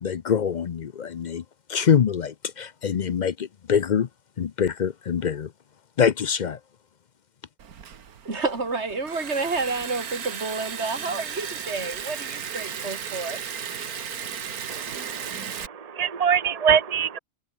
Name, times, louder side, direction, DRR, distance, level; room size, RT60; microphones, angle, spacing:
voice 1, 0.0-1.4 1.7-4.1 4.4-5.5 6.0-6.6, left 7 dB, 60° left, 0.5 m, -24 dB
Liquid, 7.6-15.7, right 7 dB, 85° right, 1.9 m, -35 dB
voice 2, 8.3-13.4, right 3 dB, 50° right, 3.9 m, -29 dB
voice 3, 14.7-17.2, right 7 dB, 25° right, 1.4 m, -24 dB
omnidirectional pair, 1.5 m